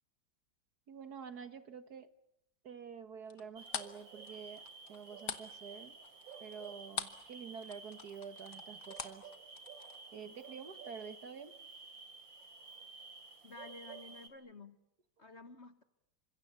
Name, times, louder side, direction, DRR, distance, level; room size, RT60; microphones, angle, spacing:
voice 1, 0.9-2.1 2.6-4.6 4.9-6.0 6.4-9.3 10.1-11.6, right 6 dB, 55° right, 11 dB, 1.8 m, -48 dB
sound 1, 3.3-7.3 7.6-10.0, left 7 dB, 60° left, 2.0 m, -43 dB
sound 2, 3.6-14.3, right 4 dB, 70° right, 3.8 m, -52 dB
voice 2, 13.4-14.8 15.2-15.8, left 3 dB, 40° left, 11 dB, 1.4 m, -52 dB
29.0 x 26.0 x 7.1 m, 0.77 s
omnidirectional pair, 2.1 m